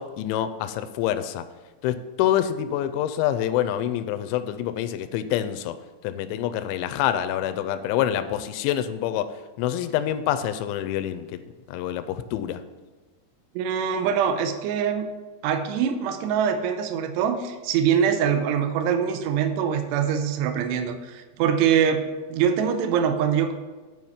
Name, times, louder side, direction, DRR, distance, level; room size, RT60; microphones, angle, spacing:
voice 1, 0.0-1.4 1.8-5.8 6.0-9.3 9.6-11.4 11.7-12.6, left 11 dB, 85° left, 11 dB, 2.8 m, -26 dB
voice 2, 13.6-15.1 15.4-22.0 22.3-23.5, right 8 dB, 85° right, 7 dB, 2.5 m, -23 dB
11.0 x 4.9 x 5.7 m, 1.3 s
omnidirectional pair, 5.4 m